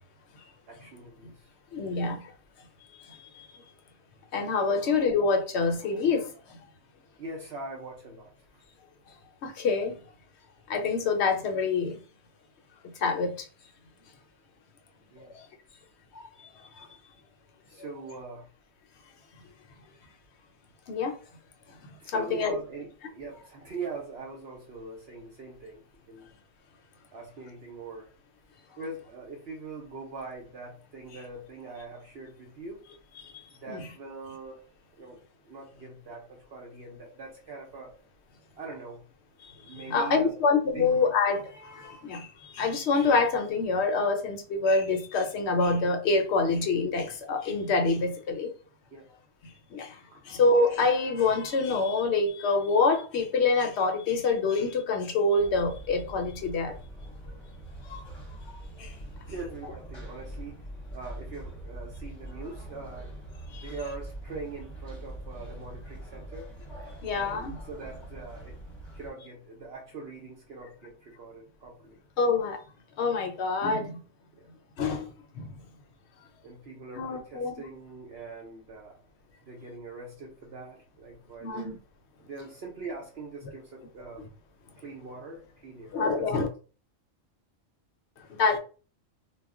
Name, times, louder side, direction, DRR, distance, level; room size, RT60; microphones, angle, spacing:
voice 1, 0.7-1.5 1.9-2.2 7.2-8.6 15.1-15.4 17.7-18.5 22.0-26.3 27.1-28.1 28.8-32.8 33.5-34.7 35.0-35.2 35.5-37.9 38.6-39.1 39.6-40.4 40.7-40.9 48.9-49.1 50.1-50.2 59.2-60.6 60.9-63.1 63.5-66.5 67.1-68.6 68.9-72.0 74.4-74.5 76.4-79.0 79.4-81.8 82.2-84.3 84.8-86.5, right 3 dB, 60° right, 0.8 m, -42 dB
voice 2, 1.7-2.3 2.9-3.5 4.3-6.6 9.4-9.9 10.7-12.0 13.0-13.5 15.3-15.5 16.1-16.2 16.8-16.9 20.9-21.2 22.1-22.5 33.2-33.8 39.4-48.5 49.7-50.0 50.2-56.8 57.9-58.0 58.8-59.0 63.5-63.7 67.0-67.6 72.2-72.6 73.0-74.0 74.8-75.5 77.0-77.5 81.4-81.7 85.9-86.5 88.4-88.6, left 4 dB, 65° left, 0.8 m, -26 dB
sound 1, 55.4-69.1, right 1 dB, 25° left, 0.7 m, -43 dB
2.3 x 2.1 x 3.5 m
omnidirectional pair, 1.3 m